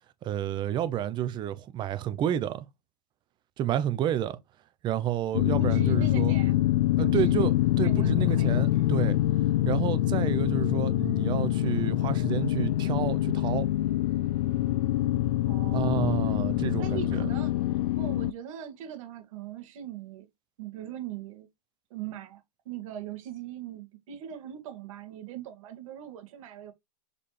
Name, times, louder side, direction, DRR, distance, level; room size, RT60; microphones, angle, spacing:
voice 1, 0.2-2.6 3.6-4.4 4.8-6.3 7.0-9.2 9.7-13.7 15.7-17.3, right 11 dB, 20° right, 0.8 m, -30 dB
sound 1, 5.3-18.3, left 15 dB, 65° left, 0.4 m, -25 dB
voice 2, 5.5-6.6 7.0-7.5 7.8-8.6 15.5-16.3 16.8-20.3 20.6-21.5 21.9-26.7, right 11 dB, 55° right, 2.3 m, -40 dB
7.6 x 4.2 x 3.4 m
hypercardioid pair, 140°, 21 cm